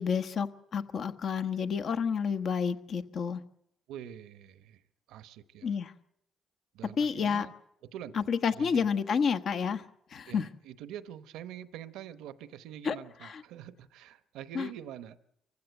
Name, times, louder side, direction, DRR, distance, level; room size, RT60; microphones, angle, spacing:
voice 1, 0.0-3.4 5.6-5.9 7.0-7.5 8.1-9.8 10.1-10.5 12.8-13.0 13.2-13.4 14.5-14.7, left 6 dB, 60° left, 1.2 m, -30 dB
voice 2, 3.9-4.8 5.1-5.7 6.7-7.5 7.9-8.3 8.5-8.9 10.3-15.2, right 10 dB, 85° right, 0.9 m, -45 dB
24.0 x 15.5 x 8.0 m
cardioid pair, 70°, 0 cm